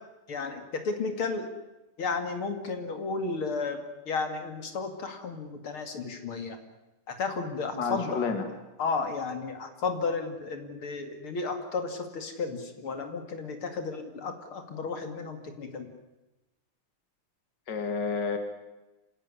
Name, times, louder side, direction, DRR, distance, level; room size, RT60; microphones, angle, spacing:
voice 1, 0.3-1.5 2.0-6.6 7.1-8.3 8.8-15.9, left 4 dB, 70° left, 6 dB, 3.2 m, -33 dB
voice 2, 7.7-8.4 17.7-18.4, left 5 dB, 50° left, 6 dB, 2.7 m, -30 dB
27.0 x 16.5 x 9.8 m, 1.0 s
omnidirectional pair, 2.4 m